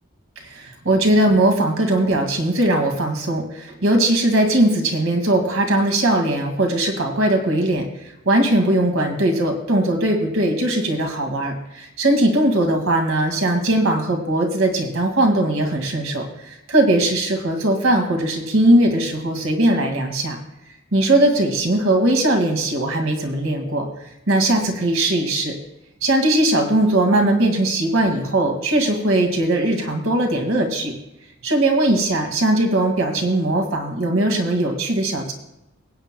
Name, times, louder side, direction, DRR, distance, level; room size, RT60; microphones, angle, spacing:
voice 1, 0.4-7.9 8.3-20.4 20.9-23.9 24.3-25.5 26.0-30.9 31.4-35.3, right 1 dB, 70° right, 3 dB, 2.0 m, -19 dB
22.5 x 8.9 x 2.2 m, 0.87 s
head